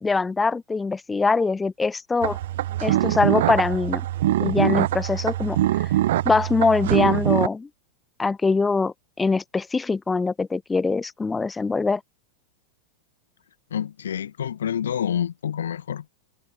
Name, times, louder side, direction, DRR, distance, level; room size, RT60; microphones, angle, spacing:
voice 1, 0.0-2.4 2.8-4.0 4.4-5.6 6.2-7.7 8.2-12.0, left 4 dB, 10° left, 0.6 m, -23 dB
sound 1, 2.2-7.5, right 14 dB, 55° right, 0.4 m, -23 dB
voice 2, 13.7-16.1, left 9 dB, 65° left, 1.9 m, -28 dB
figure-of-eight pair, 90°, 0 cm